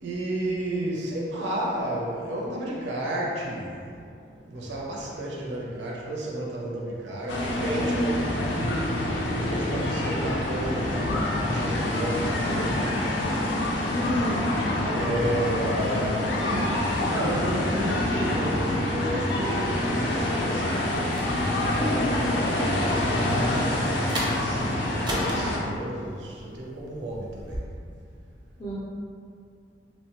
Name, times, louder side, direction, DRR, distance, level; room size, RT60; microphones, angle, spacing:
voice 1, 0.0-3.8 4.5-8.3 9.3-12.9 14.9-20.9 21.6-27.6, right 1 dB, 80° right, -3 dB, 0.5 m, -32 dB
sound 1, 7.3-25.6, left 1 dB, 90° left, 0.4 m, -26 dB
voice 2, 13.9-14.5 21.7-22.1 28.6-28.7, left 1 dB, 30° left, -9 dB, 0.4 m, -29 dB
sound 2, 21.1-27.6, equal, 25° right, 0.4 m, -38 dB
2.9 x 2.1 x 2.9 m, 2.4 s
head